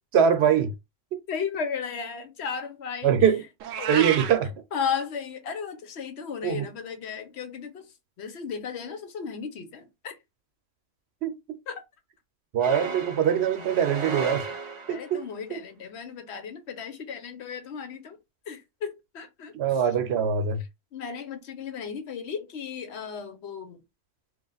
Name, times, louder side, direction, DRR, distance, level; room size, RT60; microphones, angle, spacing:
voice 1, 0.1-0.7 3.0-3.4 3.9-4.5 6.4-6.7 11.2-11.3 12.5-14.4 14.9-15.2 15.5-15.6 19.5-20.6, right 8 dB, 65° right, 0.9 m, -23 dB
voice 2, 1.3-3.3 3.8-4.1 4.7-7.9 8.2-10.2 11.7-11.8 14.9-18.2 18.5-19.5 20.9-23.8, left 6 dB, 65° left, 1.0 m, -34 dB
Meow, 3.6-4.4, right 9 dB, 90° right, 0.9 m, -29 dB
sound 1, 12.6-15.2, right 3 dB, 40° right, 0.4 m, -35 dB
3.3 x 2.4 x 4.0 m
omnidirectional pair, 1.3 m